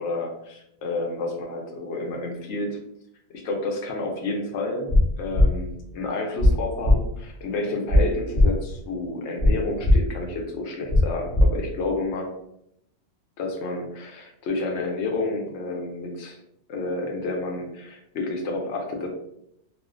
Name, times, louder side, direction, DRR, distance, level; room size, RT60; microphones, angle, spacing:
voice 1, 0.0-2.8 3.3-4.9 5.2-12.3 13.4-16.4 16.7-19.1, left 2 dB, 90° left, 2 dB, 0.9 m, -30 dB
sound 1, 4.9-5.0 5.3-5.5 6.4-6.5 6.8-7.0 7.9-8.0 8.3-8.5 9.4-9.5 9.8-10.0 10.9-11.0 11.3-11.5, left 1 dB, 60° left, 0.6 m, -16 dB
2.4 x 2.1 x 2.4 m, 0.76 s
omnidirectional pair, 1.1 m